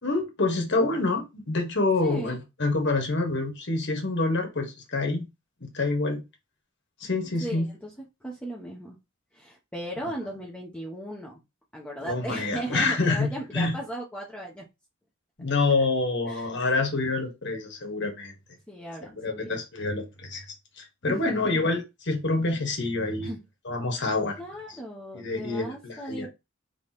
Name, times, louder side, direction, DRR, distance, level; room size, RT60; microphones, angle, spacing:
voice 1, 0.0-5.3 5.6-6.2 7.0-7.7 12.0-13.3 13.5-13.7 15.4-18.3 19.1-20.4 20.8-23.3 23.6-24.4 25.1-26.3, left 3 dB, 60° left, 1.5 m, -27 dB
voice 2, 2.0-2.4 7.4-7.9 8.2-9.0 9.3-11.4 11.7-14.6 16.3-16.5 18.7-19.6 21.1-21.6 23.0-23.4 24.4-26.3, right 1 dB, 5° left, 0.8 m, -37 dB
3.5 x 3.1 x 4.1 m
head